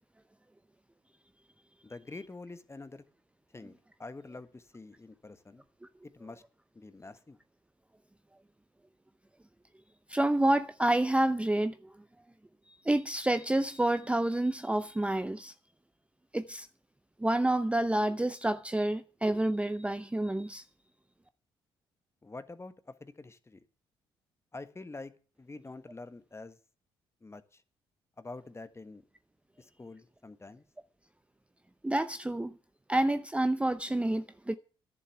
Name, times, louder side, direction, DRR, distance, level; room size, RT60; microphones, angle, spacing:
voice 1, 1.8-3.0 3.5-5.6 6.1-6.4 6.7-7.4 22.2-23.6 24.5-25.1 25.4-26.6 27.2-27.6 28.2-29.0 29.6-30.6, left 3 dB, 20° left, 1.4 m, -46 dB
voice 2, 10.1-11.8 12.8-15.5 16.3-16.7 17.2-20.6 31.8-32.6 32.9-34.6, right 1 dB, 10° right, 0.7 m, -28 dB
11.0 x 6.9 x 9.2 m
hypercardioid pair, 50°, 12 cm